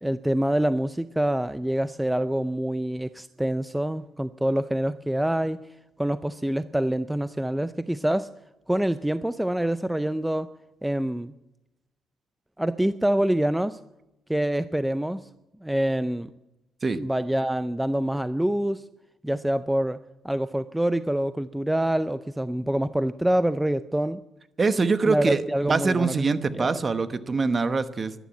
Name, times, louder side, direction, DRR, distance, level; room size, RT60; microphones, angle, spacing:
voice 1, 0.0-5.6 6.0-8.3 8.7-10.5 10.8-11.3 12.6-13.8 14.3-15.3 15.6-16.3 17.0-18.9 19.2-20.0 20.2-24.2 25.1-26.3 26.5-26.7, right 1 dB, 5° right, 13 dB, 0.4 m, -26 dB
voice 2, 24.6-28.1, right 4 dB, 35° right, 11 dB, 1.0 m, -24 dB
12.0 x 11.5 x 8.5 m, 0.94 s
cardioid pair, 90°, 0 cm